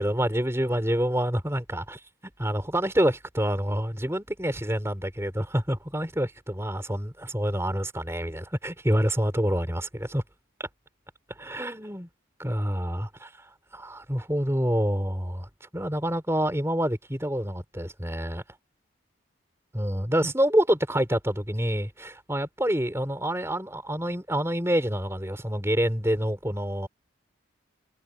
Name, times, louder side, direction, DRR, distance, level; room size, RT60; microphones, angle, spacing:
voice 1, 0.0-2.0 2.4-9.8 10.1-10.2 11.4-12.1 12.4-13.5 13.7-18.4 19.7-26.9, equal, 15° right, 4.3 m, -27 dB
head